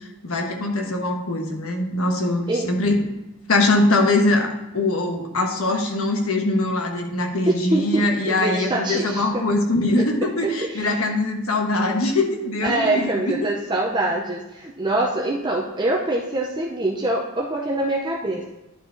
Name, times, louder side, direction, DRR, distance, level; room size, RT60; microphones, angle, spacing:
voice 1, 0.2-3.0 3.5-13.5, left 2 dB, 80° left, 3 dB, 1.2 m, -22 dB
voice 2, 7.5-9.4 10.0-10.1 10.6-10.9 12.6-18.4, right 2 dB, 20° right, -1 dB, 0.6 m, -24 dB
11.0 x 4.7 x 3.9 m, 0.96 s
head